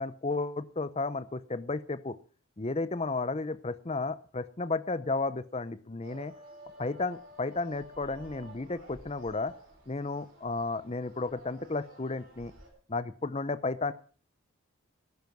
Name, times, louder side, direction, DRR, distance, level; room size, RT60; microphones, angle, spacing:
voice 1, 0.0-2.2 2.6-6.3 6.8-9.5 9.9-12.5 12.9-13.9, left 3 dB, 30° left, 15 dB, 0.6 m, -33 dB
sound 1, 6.0-12.7, right 1 dB, 45° right, 5.4 m, -52 dB
14.0 x 11.0 x 6.2 m, 0.43 s
head